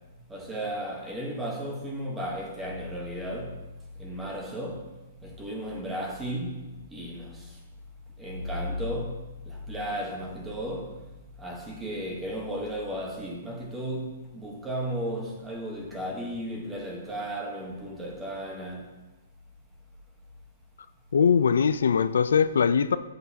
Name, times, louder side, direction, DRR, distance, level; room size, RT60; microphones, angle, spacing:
voice 1, 0.3-3.6 4.0-4.9 5.2-6.6 6.9-7.5 8.2-11.0 11.4-18.9, equal, 5° right, 1.0 m, -34 dB
voice 2, 21.1-23.0, left 6 dB, 85° left, 0.4 m, -21 dB
11.5 x 7.6 x 2.8 m
hypercardioid pair, 165°, 0 cm